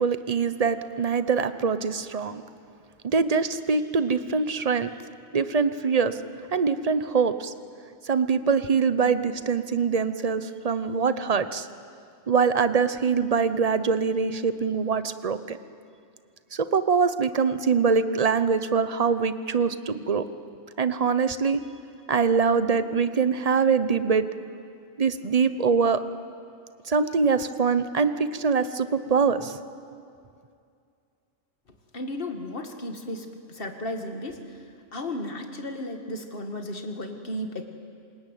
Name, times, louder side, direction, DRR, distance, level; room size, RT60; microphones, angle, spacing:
voice 1, 0.0-2.4 3.0-4.9 5.3-6.2 6.5-7.5 8.1-11.7 12.3-15.6 16.5-20.2 20.8-21.6 22.1-24.3 25.0-26.0 26.9-29.6, right 5 dB, 35° right, 12 dB, 0.9 m, -23 dB
voice 2, 31.9-37.6, left 1 dB, 45° left, 5 dB, 2.2 m, -34 dB
27.0 x 21.0 x 9.2 m, 2.4 s
omnidirectional pair, 1.4 m